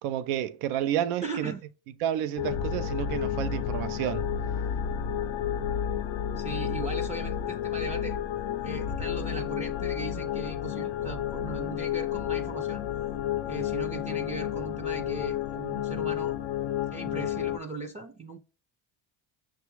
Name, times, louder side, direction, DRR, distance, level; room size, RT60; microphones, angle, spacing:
voice 1, 0.0-1.5 2.0-4.3, right 11 dB, 85° right, 0.5 m, -30 dB
voice 2, 1.2-1.6 6.4-8.2 8.6-12.8 13.4-16.4 16.9-18.4, right 2 dB, 15° right, 0.4 m, -38 dB
sound 1, 2.4-17.6, left 9 dB, 80° left, 0.6 m, -31 dB
6.1 x 2.3 x 2.9 m
cardioid pair, 95°, 50 cm